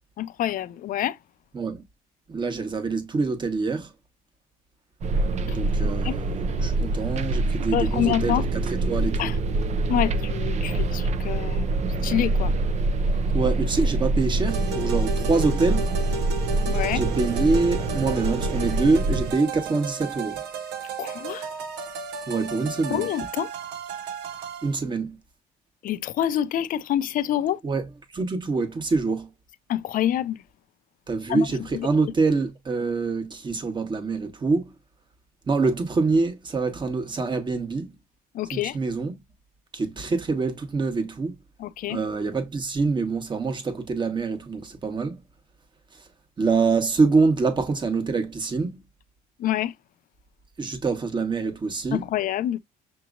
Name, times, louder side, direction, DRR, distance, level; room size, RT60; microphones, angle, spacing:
voice 1, 0.2-1.2 5.5-5.6 6.0-6.1 7.7-8.4 9.2-9.3 9.9-11.7 12.0-12.5 16.7-17.0 21.0-21.5 22.9-23.5 25.8-27.6 29.7-30.4 31.3-31.5 31.7-31.9 38.3-38.8 41.6-42.0 49.4-49.7 51.9-52.6, left 11 dB, 55° left, 0.5 m, -26 dB
voice 2, 2.3-3.9 5.5-9.3 13.3-15.9 16.9-20.4 22.3-23.1 24.6-25.2 27.6-27.9 28.1-29.3 31.1-34.7 35.5-37.9 38.5-39.2 39.7-41.3 41.9-45.2 45.9-46.0 46.4-48.8 50.6-52.0, right 4 dB, 25° right, 1.2 m, -25 dB
sound 1, 5.0-19.3, right 2 dB, 45° right, 0.5 m, -25 dB
sound 2, 14.5-24.8, right 4 dB, 80° right, 0.8 m, -34 dB
6.0 x 2.9 x 2.5 m
cardioid pair, 110°, 17 cm